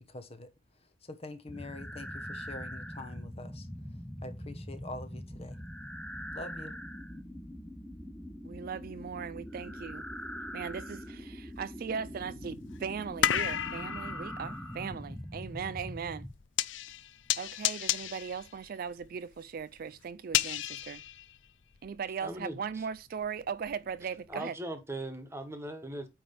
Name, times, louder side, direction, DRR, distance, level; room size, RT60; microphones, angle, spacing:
voice 1, 0.1-5.6 6.3-6.8, left 2 dB, 30° left, 1.0 m, -45 dB
sound 1, 1.5-16.3, equal, 5° left, 0.6 m, -42 dB
voice 2, 8.4-10.0 10.5-16.3 17.4-21.0 21.8-24.6, right 6 dB, 50° right, 0.4 m, -38 dB
sound 2, 11.2-11.3 11.8-22.0 22.3-24.0 24.3-24.4, left 11 dB, 75° left, 0.5 m, -34 dB
voice 3, 22.2-22.6 24.3-26.1, right 1 dB, 15° right, 1.4 m, -39 dB
9.1 x 3.3 x 5.8 m
head